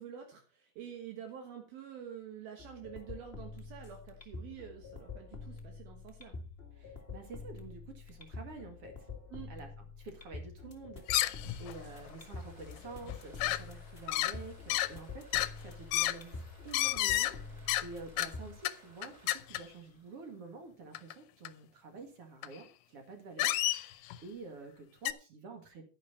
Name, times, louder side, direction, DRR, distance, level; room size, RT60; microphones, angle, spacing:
voice 1, 0.0-6.3 9.3-9.5, right 9 dB, 70° right, 3 dB, 3.2 m, -47 dB
sound 1, 2.6-18.6, left 4 dB, 40° left, 0.8 m, -47 dB
voice 2, 6.7-9.1 9.5-25.8, right 4 dB, 45° right, 4 dB, 2.4 m, -49 dB
sound 2, 11.1-11.8 12.1-12.2 12.7-12.8 13.0-13.6 14.1-14.4 14.7-14.9 15.3-15.5 15.9-16.2 16.7-17.3 17.7-17.9 18.2-18.3 18.7-18.8 19.0-19.6 21.0-21.1 21.5-21.6 22.4-22.5 23.4-24.2 25.1-25.2, left 16 dB, 80° left, 2.5 m, -31 dB
sound 3, 11.1-20.9, right 1 dB, 10° right, 4.9 m, -61 dB
11.0 x 10.5 x 4.2 m, 0.34 s
omnidirectional pair, 4.6 m